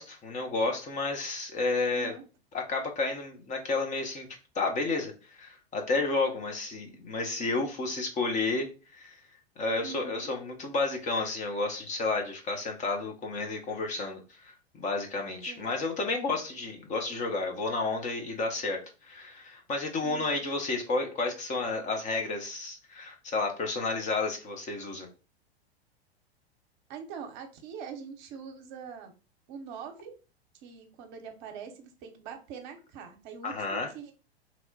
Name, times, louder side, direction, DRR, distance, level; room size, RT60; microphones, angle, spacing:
voice 1, 0.0-2.1 2.5-4.3 4.5-9.2 9.6-25.1 33.4-33.9, left 3 dB, 25° left, 3 dB, 0.7 m, -31 dB
voice 2, 1.9-2.2 9.8-10.3 15.5-15.8 20.0-20.5 26.9-29.2 29.5-30.1 30.6-34.1, right 6 dB, 45° right, 5 dB, 0.8 m, -43 dB
2.9 x 2.1 x 3.9 m, 0.33 s
figure-of-eight pair, 95°, 32 cm